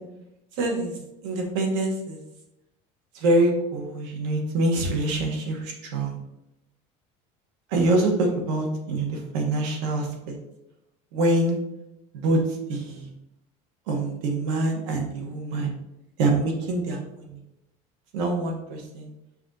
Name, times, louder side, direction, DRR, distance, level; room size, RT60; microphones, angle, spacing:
voice 1, 0.6-2.2 3.1-6.2 7.7-10.4 11.1-11.6 12.2-12.4 12.7-13.1 13.9-15.7 16.2-17.4 18.1-19.1, right 2 dB, 80° right, 2 dB, 1.1 m, -25 dB
5.8 x 2.9 x 2.6 m, 0.88 s
cardioid pair, 180°, 17 cm